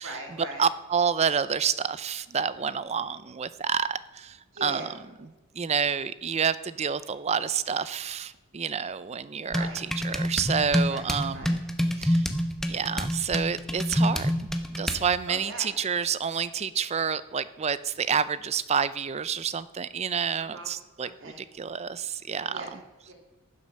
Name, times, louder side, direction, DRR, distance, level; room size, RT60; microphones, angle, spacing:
voice 1, 0.0-0.6 4.5-5.0 9.5-9.8 10.9-11.5 15.3-15.8 20.4-20.7 21.0-21.4 22.2-23.1, right 2 dB, 65° right, 1 dB, 3.1 m, -41 dB
voice 2, 0.6-4.8 5.6-11.6 12.0-12.3 12.7-14.3 14.8-21.3 21.6-22.7, right 7 dB, 30° right, 16 dB, 0.4 m, -28 dB
sound 1, 9.5-15.1, equal, ahead, 0.8 m, -27 dB
15.0 x 7.6 x 6.3 m, 1.2 s
head